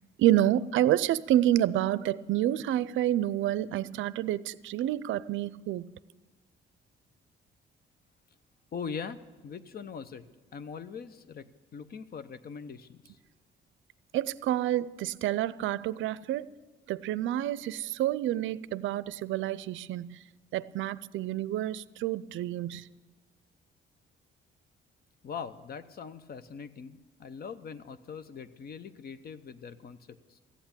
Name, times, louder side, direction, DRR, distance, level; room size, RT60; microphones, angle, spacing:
voice 1, 0.2-5.8 14.1-16.5 16.9-20.2 20.5-22.9, right 13 dB, 75° right, 18 dB, 0.4 m, -28 dB
voice 2, 8.7-11.5 11.7-13.2 25.2-30.4, left 6 dB, 50° left, 13 dB, 0.8 m, -42 dB
14.5 x 8.1 x 8.7 m, 1.3 s
cardioid pair, 90°, 20 cm